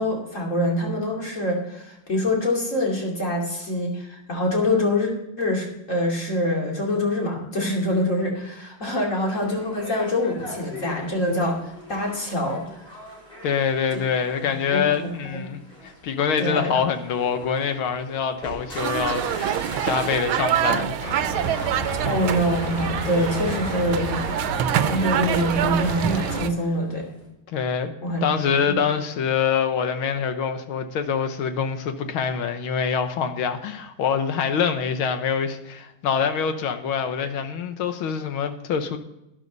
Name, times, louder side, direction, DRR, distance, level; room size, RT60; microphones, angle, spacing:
voice 1, 0.0-5.1 5.4-12.8 14.4-15.5 16.4-16.8 22.0-24.2 24.9-27.0 28.0-28.9, left 1 dB, 35° left, -1 dB, 2.9 m, -25 dB
sound 1, 9.2-27.3, left 1 dB, 20° left, 5.3 m, -41 dB
voice 2, 13.4-21.1 27.5-27.9 28.2-39.0, left 7 dB, 85° left, 8 dB, 1.8 m, -25 dB
sound 2, 18.8-26.5, right 10 dB, 85° right, 1.5 m, -26 dB
sound 3, 21.0-26.4, equal, 55° left, 3.4 m, -32 dB
12.0 x 11.0 x 4.0 m, 0.87 s
omnidirectional pair, 2.2 m